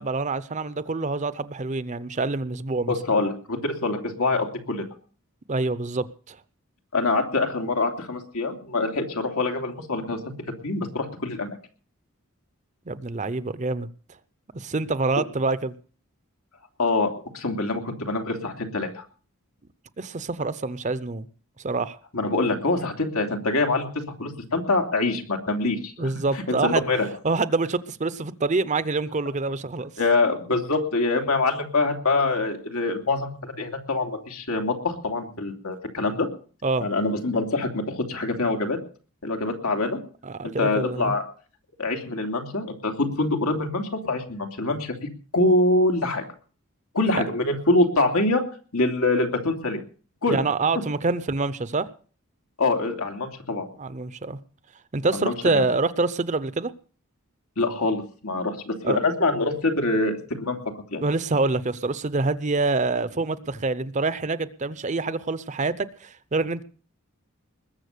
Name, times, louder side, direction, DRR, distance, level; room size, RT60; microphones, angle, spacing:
voice 1, 0.0-2.9 5.5-6.4 12.9-13.9 14.5-15.7 20.0-21.3 21.6-22.0 26.0-26.8 27.2-29.9 36.6-36.8 40.2-41.1 50.3-51.9 53.8-54.4 54.9-56.7 58.8-59.0 61.0-66.6, right 3 dB, 35° right, 0.7 m, -26 dB
voice 2, 2.9-4.8 6.9-10.4 10.6-11.6 16.8-19.0 22.1-23.9 24.2-27.1 30.0-36.3 36.8-38.8 39.2-40.0 40.4-41.2 41.8-44.9 45.3-46.2 46.9-48.4 48.7-49.8 50.2-50.4 52.6-53.7 55.1-55.6 57.6-61.0, left 2 dB, 90° left, 2.9 m, -25 dB
20.5 x 7.3 x 6.7 m
head